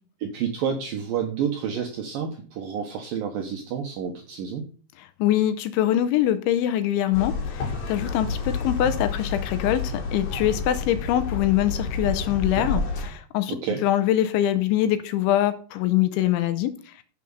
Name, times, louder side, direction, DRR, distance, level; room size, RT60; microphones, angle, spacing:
voice 1, 0.2-4.6 13.5-13.8, right 7 dB, 80° right, 2.0 m, -29 dB
voice 2, 5.2-17.0, left 12 dB, 80° left, 2.9 m, -24 dB
sound 1, 7.1-13.1, left 4 dB, 50° left, 3.8 m, -29 dB
9.6 x 7.8 x 5.4 m
omnidirectional pair, 5.8 m